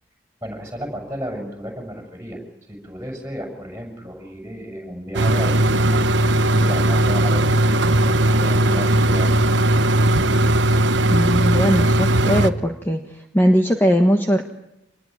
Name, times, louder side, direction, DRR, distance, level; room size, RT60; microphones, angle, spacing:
voice 1, 0.4-2.4 2.7-6.0 6.5-9.4, equal, 15° right, 2 dB, 7.0 m, -33 dB
sound 1, 5.1-12.5, right 1 dB, 70° right, 1.1 m, -18 dB
voice 2, 11.1-14.4, equal, 10° left, 4 dB, 1.4 m, -19 dB
26.0 x 21.0 x 9.7 m, 0.87 s
head